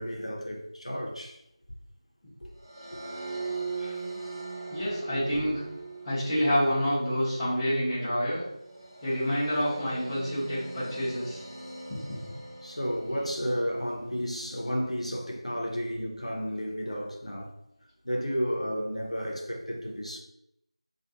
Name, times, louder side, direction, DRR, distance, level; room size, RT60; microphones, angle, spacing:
voice 1, 0.0-1.4 2.4-2.5 2.9-3.0 3.8-4.0 12.6-17.5 18.0-20.2, equal, 90° left, 0.7 m, -32 dB
sound 1, 2.6-14.0, right 3 dB, 45° right, 0.9 m, -41 dB
voice 2, 4.7-5.6 6.0-8.4 9.0-11.4 11.9-12.2, equal, 10° left, 0.7 m, -28 dB
2.4 x 2.3 x 2.7 m
figure-of-eight pair, 170°, 3 cm